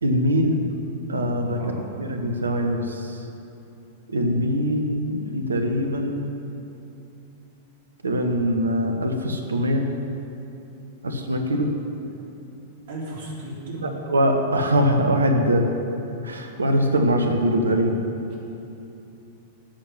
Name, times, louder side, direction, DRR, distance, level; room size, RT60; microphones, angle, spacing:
voice 1, 0.0-0.7 1.1-1.7 2.0-3.2 4.1-6.2 8.0-9.9 11.0-11.7 13.8-15.7 16.2-17.9, equal, 75° right, 4 dB, 1.3 m, -22 dB
voice 2, 1.5-1.9 12.9-13.9, right 1 dB, 55° right, -4 dB, 3.8 m, -35 dB
10.0 x 8.2 x 9.8 m, 2.8 s
figure-of-eight pair, 95°, 0 cm